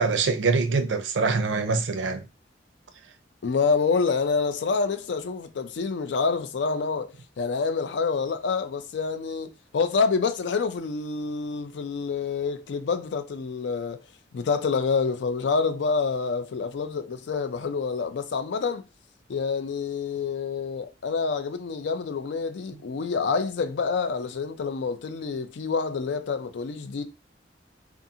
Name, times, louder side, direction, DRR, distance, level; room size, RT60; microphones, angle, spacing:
voice 1, 0.0-2.2, right 4 dB, 85° right, 0.4 m, -24 dB
voice 2, 3.4-14.0 14.3-18.8 19.3-27.0, left 5 dB, 75° left, 0.4 m, -27 dB
2.5 x 2.4 x 2.7 m
head